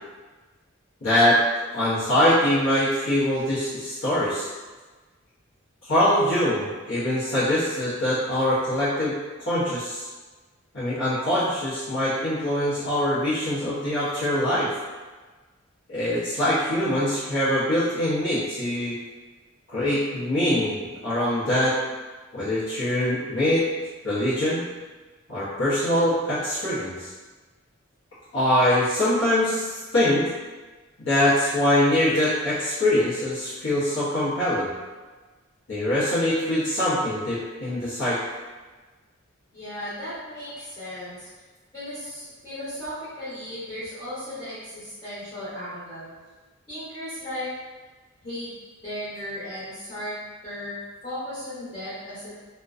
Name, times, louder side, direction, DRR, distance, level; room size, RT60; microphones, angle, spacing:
voice 1, 1.0-1.4 1.7-4.5 5.8-9.2 9.5-10.1 10.7-14.8 15.9-19.0 19.7-21.8 22.3-23.6 24.0-24.6 25.3-27.1 28.3-30.3 31.0-34.7 35.7-38.2, left 1 dB, 70° left, -12 dB, 0.7 m, -23 dB
voice 2, 39.5-41.3 41.7-46.1 46.7-47.5 48.2-48.5 48.8-50.1 50.4-50.8 51.0-52.4, left 1 dB, 30° left, -13 dB, 0.8 m, -36 dB
2.5 x 2.1 x 2.4 m, 1.3 s
head